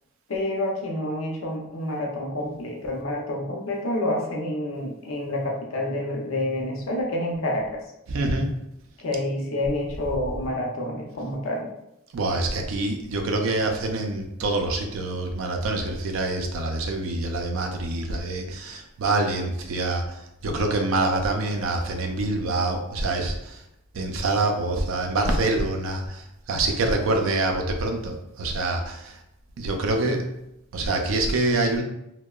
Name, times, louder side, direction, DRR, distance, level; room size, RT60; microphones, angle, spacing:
voice 1, 0.3-7.8 9.0-11.7, left 1 dB, 75° left, -1 dB, 0.6 m, -28 dB
voice 2, 8.1-8.5 12.1-20.0 20.4-23.6 23.9-26.2 26.5-29.1 29.6-30.3 30.7-31.8, right 2 dB, 75° right, 3 dB, 0.4 m, -25 dB
2.8 x 2.1 x 2.3 m, 0.84 s
head